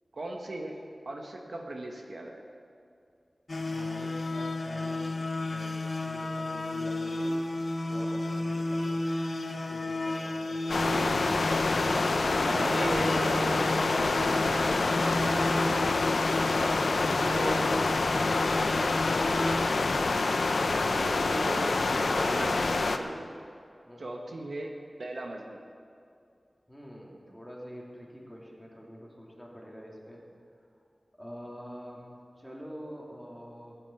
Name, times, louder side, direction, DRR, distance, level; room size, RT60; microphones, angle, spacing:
voice 1, 0.1-0.8 1.0-2.4 10.8-11.1 11.8-14.6 15.0-15.6 16.8-17.7 18.4-18.9 20.9-21.7 22.0-23.3 24.0-24.7 25.0-25.6, right 2 dB, 75° right, 1 dB, 1.4 m, -37 dB
sound 1, 3.5-19.6, left 2 dB, 55° left, 1.1 m, -33 dB
voice 2, 3.6-5.7 6.0-7.4 7.9-9.0 9.7-10.9 23.8-24.3 26.7-30.2 31.2-33.8, equal, ahead, -3 dB, 3.0 m, -46 dB
sound 2, 10.7-23.0, left 3 dB, 85° left, 0.7 m, -27 dB
15.0 x 9.7 x 7.1 m, 2.4 s
wide cardioid pair, 80°, 0 cm